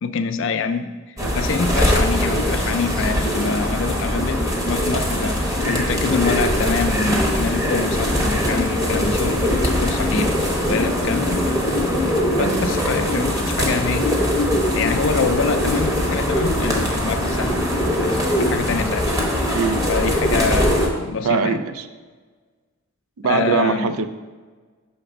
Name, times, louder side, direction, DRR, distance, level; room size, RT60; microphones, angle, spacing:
voice 1, 0.0-11.8 12.3-14.1 14.8-17.7 18.0-19.1 19.9-21.6 23.2-24.0, left 5 dB, 60° left, 10 dB, 0.4 m, -25 dB
sound 1, 1.2-20.9, equal, 15° right, 0.8 m, -21 dB
voice 2, 12.4-12.7 19.5-19.9 21.2-21.8 23.2-24.1, right 5 dB, 80° right, 10 dB, 0.4 m, -22 dB
5.9 x 3.4 x 5.2 m, 1.4 s
head